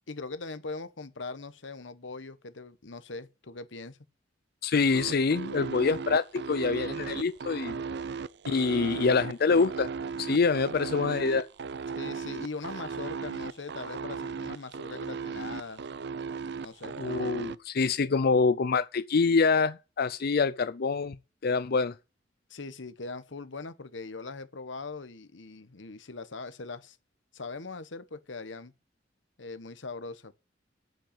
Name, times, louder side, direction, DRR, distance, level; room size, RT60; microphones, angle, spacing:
voice 1, 0.1-4.0 12.0-15.8 16.6-16.9 22.5-27.0 27.3-28.7 29.4-30.3, left 3 dB, 85° left, 1.1 m, -41 dB
voice 2, 4.6-7.8 8.5-9.9 10.2-11.5 17.0-21.2 21.4-21.9, left 4 dB, 55° left, 0.5 m, -26 dB
sound 1, 4.9-17.6, right 5 dB, 65° right, 0.5 m, -36 dB
7.9 x 7.9 x 8.8 m
head